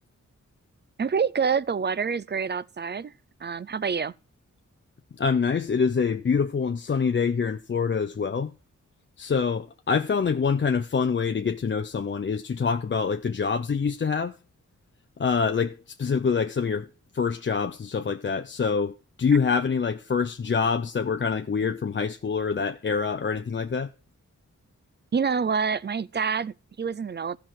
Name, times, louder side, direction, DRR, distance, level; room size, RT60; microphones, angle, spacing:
voice 1, 1.0-3.1 3.4-4.1 25.1-27.4, right 6 dB, 35° right, 0.4 m, -27 dB
voice 2, 5.2-8.5 9.2-14.3 15.2-16.9 17.1-23.9, left 5 dB, 40° left, 0.5 m, -25 dB
14.5 x 5.9 x 4.6 m
wide cardioid pair, 100°, 30 cm